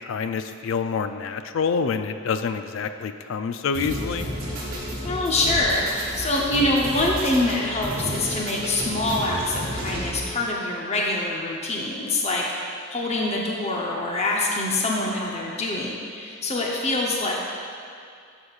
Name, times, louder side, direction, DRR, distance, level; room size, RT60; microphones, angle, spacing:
voice 1, 0.0-4.3, left 5 dB, 60° left, 9 dB, 0.3 m, -27 dB
sound 1, 3.7-10.4, equal, 45° right, 1.6 m, -32 dB
voice 2, 5.0-17.4, left 2 dB, 30° left, -2 dB, 0.7 m, -25 dB
11.5 x 6.3 x 2.4 m, 2.4 s
head